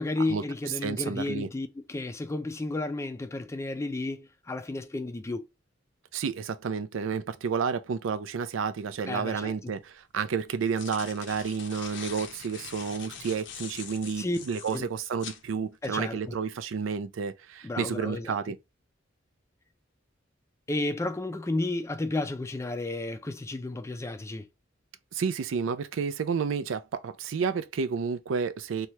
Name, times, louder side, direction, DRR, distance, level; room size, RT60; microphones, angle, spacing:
voice 1, 0.0-5.5 9.1-9.5 14.2-14.4 14.7-14.9 15.8-16.4 17.6-18.4 20.7-24.5, left 2 dB, 15° left, 0.3 m, -32 dB
voice 2, 0.8-1.5 6.1-18.6 25.1-28.9, right 6 dB, 85° right, 0.4 m, -31 dB
sound 1, 10.4-15.4, left 7 dB, 65° left, 0.5 m, -43 dB
2.7 x 2.3 x 3.1 m
head